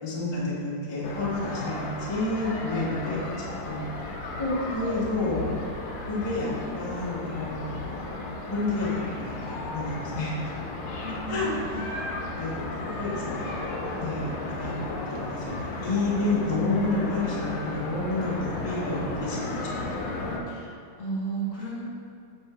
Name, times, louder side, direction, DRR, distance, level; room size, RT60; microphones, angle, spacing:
voice 1, 0.0-5.5 6.1-10.4 11.3-12.1 12.4-12.6 13.0-13.5 14.0-19.8, left 2 dB, 20° left, -7 dB, 0.7 m, -30 dB
sound 1, 1.0-20.4, left 2 dB, 80° left, 1.6 m, -34 dB
voice 2, 11.0-11.9 20.5-20.7 21.0-21.8, right 3 dB, 45° left, -6 dB, 1.1 m, -33 dB
5.5 x 3.6 x 5.6 m, 2.4 s
omnidirectional pair, 2.3 m